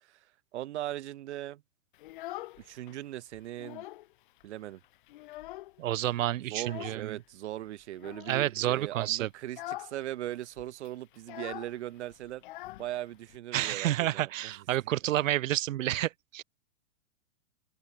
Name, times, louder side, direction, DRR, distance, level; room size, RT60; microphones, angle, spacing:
voice 1, 0.5-1.6 2.6-3.8 4.4-4.8 6.4-12.4 12.8-14.5, right 14 dB, 60° right, 1.6 m, -39 dB
Child speech kid speaking, 1.9-3.0 3.3-4.1 4.4-4.5 4.8-5.9 6.6-7.1 7.9-8.4 8.9-9.1 9.4-10.0 10.2-10.3 10.6-13.4, left 17 dB, 40° left, 0.6 m, -43 dB
voice 2, 5.8-7.2 8.3-9.3 13.5-16.4, right 13 dB, 85° right, 0.7 m, -29 dB
hypercardioid pair, 155°, 38 cm